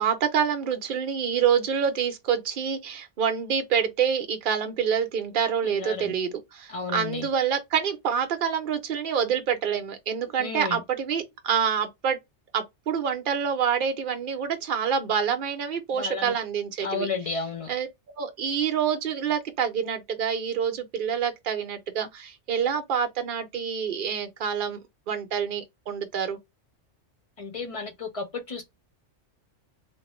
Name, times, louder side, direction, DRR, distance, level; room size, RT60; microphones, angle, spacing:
voice 1, 0.0-12.2 12.5-17.1 17.7-17.9 18.2-24.8 25.1-26.4, right 7 dB, 50° right, 0.8 m, -27 dB
voice 2, 5.6-6.1 6.7-7.3 10.4-10.8 16.0-16.4 16.8-17.7 27.4-28.6, left 4 dB, 35° left, 0.7 m, -32 dB
2.9 x 2.6 x 3.0 m
omnidirectional pair, 1.2 m